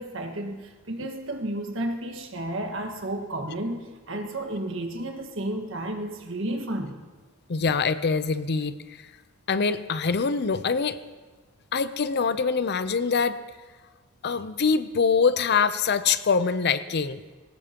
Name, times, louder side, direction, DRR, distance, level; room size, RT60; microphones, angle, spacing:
voice 1, 0.0-3.8 4.1-6.9, right 1 dB, 70° right, 4 dB, 1.6 m, -32 dB
voice 2, 7.5-8.8 9.5-11.0 11.7-13.4 14.2-17.2, left 5 dB, 55° left, 13 dB, 0.6 m, -24 dB
19.0 x 18.0 x 2.9 m, 1.3 s
head